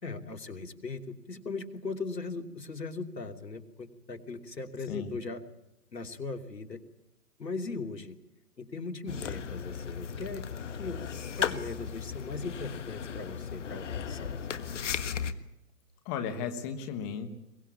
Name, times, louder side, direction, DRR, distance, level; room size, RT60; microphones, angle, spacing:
voice 1, 0.0-5.4 5.9-6.8 7.4-8.2 8.6-10.4 10.8-11.0 11.4-14.4, left 3 dB, 85° left, 6 dB, 3.0 m, -39 dB
sound 1, 9.1-15.3, left 7 dB, 45° left, 1.6 m, -36 dB
voice 2, 16.0-17.3, left 7 dB, 15° left, 7 dB, 1.3 m, -35 dB
22.5 x 21.5 x 8.4 m, 0.87 s
hypercardioid pair, 150°, 49 cm